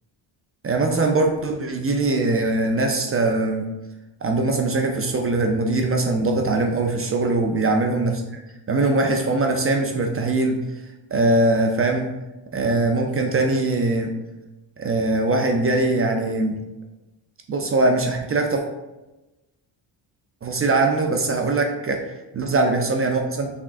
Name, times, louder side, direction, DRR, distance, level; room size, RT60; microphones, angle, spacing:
voice 1, 0.6-3.7 4.2-8.1 8.7-10.6 11.1-12.1 12.5-14.1 14.8-16.6 17.5-18.6 20.4-22.0 22.3-23.5, right 2 dB, 30° right, 3 dB, 0.4 m, -21 dB
5.8 x 3.6 x 2.4 m, 1.0 s
cardioid pair, 165°, 47 cm